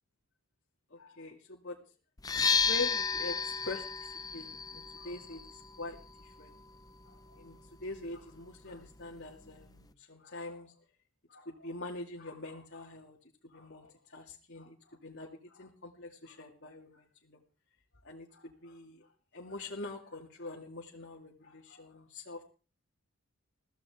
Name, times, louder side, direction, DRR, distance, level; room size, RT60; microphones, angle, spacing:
voice 1, 0.9-1.8 2.3-6.6 7.0-10.7 11.3-13.2 13.4-17.4 18.0-22.4, left 2 dB, 50° left, -1 dB, 2.3 m, -44 dB
sound 1, 2.2-9.9, left 5 dB, 15° left, 0.7 m, -35 dB
22.5 x 15.0 x 3.6 m, 0.37 s
head